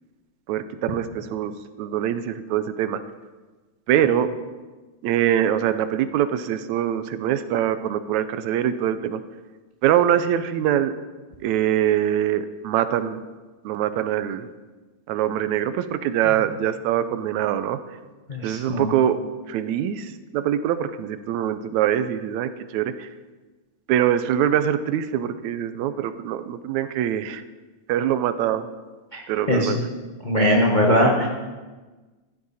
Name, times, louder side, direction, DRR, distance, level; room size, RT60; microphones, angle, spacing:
voice 1, 0.5-1.5 1.8-3.0 3.9-4.3 5.0-9.2 9.8-10.9 11.4-13.2 13.6-14.5 15.1-17.8 18.4-19.2 19.5-23.1 23.9-27.4 27.9-28.7 29.3-29.8, right 10 dB, 80° right, 11 dB, 2.0 m, -23 dB
voice 2, 18.3-18.9 29.5-29.8 30.2-31.3, equal, 45° left, -1 dB, 0.6 m, -20 dB
14.5 x 12.5 x 4.2 m, 1.3 s
omnidirectional pair, 3.3 m